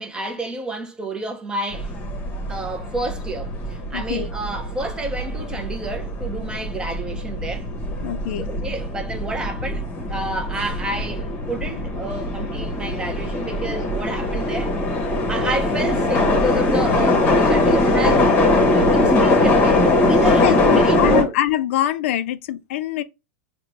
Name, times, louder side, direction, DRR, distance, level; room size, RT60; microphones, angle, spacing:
voice 1, 0.0-1.9 2.5-7.7 8.4-9.8 10.1-14.7 15.3-18.3 18.7-21.3, right 2 dB, 10° right, 0.6 m, -30 dB
sound 1, 1.7-21.2, left 2 dB, 25° left, 0.9 m, -21 dB
voice 2, 3.9-4.3 8.0-8.5 20.4-23.0, left 13 dB, 70° left, 0.4 m, -23 dB
3.9 x 2.2 x 3.1 m
supercardioid pair, 140°, 7 cm